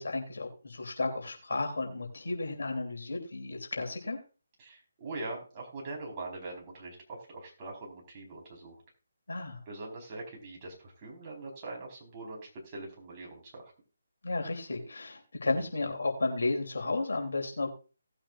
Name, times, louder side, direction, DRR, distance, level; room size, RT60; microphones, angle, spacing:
voice 1, 0.0-4.2 9.3-9.6 14.2-17.7, left 3 dB, 60° left, 3 dB, 3.3 m, -33 dB
voice 2, 4.6-8.7 9.7-13.7, right 2 dB, 25° right, -2 dB, 4.6 m, -42 dB
18.0 x 8.6 x 2.6 m, 0.34 s
figure-of-eight pair, 145°, 0 cm